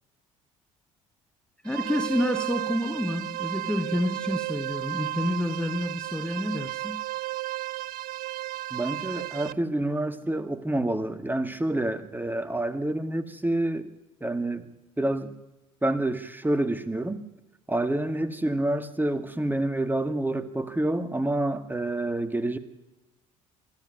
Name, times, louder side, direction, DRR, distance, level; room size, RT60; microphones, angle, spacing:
voice 1, 1.6-7.0, left 1 dB, 5° left, 8 dB, 1.4 m, -29 dB
sound 1, 1.6-9.5, right 17 dB, 55° right, 0.6 m, -33 dB
voice 2, 8.7-13.9 14.2-15.3 15.8-17.2 17.7-22.6, right 1 dB, 10° right, 10 dB, 2.1 m, -28 dB
24.0 x 14.0 x 9.6 m, 1.0 s
figure-of-eight pair, 55°, 17 cm